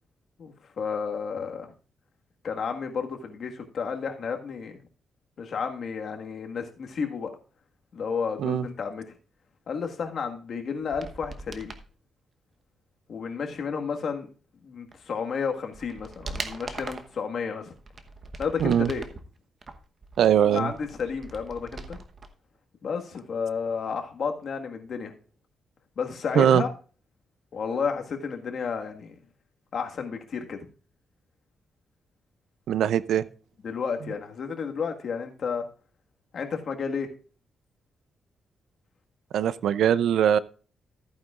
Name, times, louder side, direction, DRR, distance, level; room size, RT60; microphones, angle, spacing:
voice 1, 0.4-1.7 2.4-4.8 5.4-7.3 7.9-9.0 9.7-11.7 13.1-14.3 14.6-17.7 18.4-19.0 20.4-22.0 22.8-25.1 26.0-26.7 27.5-29.1 29.7-30.6 33.6-35.6 36.3-37.1, left 6 dB, 50° left, 4 dB, 1.6 m, -31 dB
sound 1, 10.8-11.9 14.9-15.0 15.5-17.2 17.7-19.2 19.6-22.3 22.5-22.6, right 3 dB, 35° right, 1.0 m, -40 dB
voice 2, 18.6-18.9 20.2-20.7 26.3-26.6 32.7-33.2 39.3-40.4, right 9 dB, 80° right, 17 dB, 0.5 m, -21 dB
14.5 x 9.1 x 2.4 m, 0.37 s
cardioid pair, 140°, 0 cm